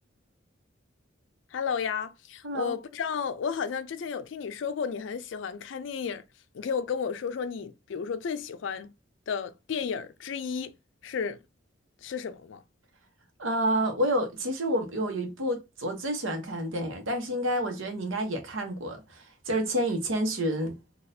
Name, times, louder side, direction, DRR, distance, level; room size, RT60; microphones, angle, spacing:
voice 1, 1.5-6.2 6.5-8.9 9.3-10.8 11.0-11.4 12.0-12.6, left 6 dB, 70° left, 0.4 m, -33 dB
voice 2, 2.4-2.7 13.4-20.7, equal, 85° right, 0.9 m, -29 dB
4.0 x 2.4 x 2.6 m
head